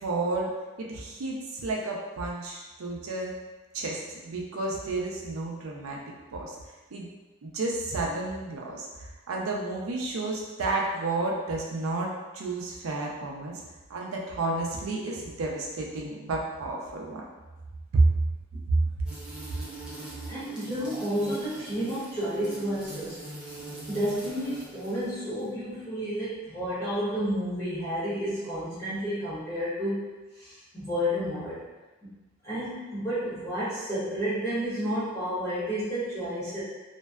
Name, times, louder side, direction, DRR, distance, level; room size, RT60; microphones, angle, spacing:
voice 1, 0.0-3.4 3.7-6.6 6.9-7.1 7.4-13.6 13.9-17.2 17.9-18.0 18.7-18.8, right 2 dB, 70° right, -1 dB, 0.4 m, -31 dB
sound 1, 19.0-25.4, right 2 dB, 5° right, 0.4 m, -42 dB
voice 2, 20.3-23.6 23.9-31.6 32.4-36.6, equal, 15° left, -13 dB, 0.8 m, -31 dB
2.5 x 2.1 x 2.2 m, 1.2 s
head